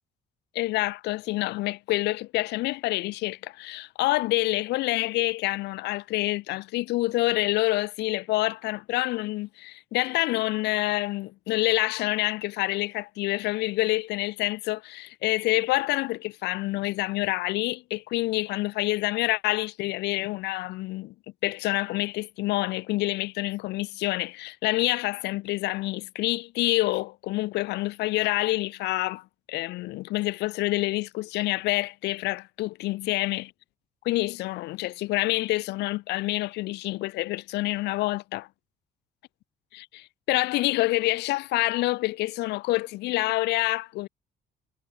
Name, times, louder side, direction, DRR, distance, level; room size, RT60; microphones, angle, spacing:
voice 1, 0.5-21.1 21.4-33.5 34.0-38.5 39.7-44.1, left 19 dB, 85° left, 1.4 m, -27 dB
cardioid pair, 110°, 17 cm